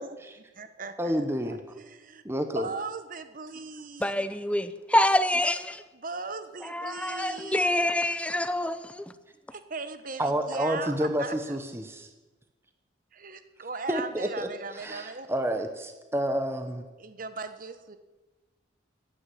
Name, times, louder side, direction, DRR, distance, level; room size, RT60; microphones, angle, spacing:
voice 1, 0.0-0.4 1.0-1.7 2.2-2.7 10.2-12.1 13.9-14.5 14.7-16.8, equal, 15° right, 1.0 m, -29 dB
voice 2, 0.5-1.2 1.4-2.2 2.5-4.2 5.9-7.8 9.5-11.6 13.1-15.3 17.0-18.0, right 4 dB, 45° right, 1.0 m, -38 dB
voice 3, 4.0-5.8 6.7-9.0, left 1 dB, 5° left, 0.6 m, -26 dB
15.0 x 10.0 x 7.7 m
head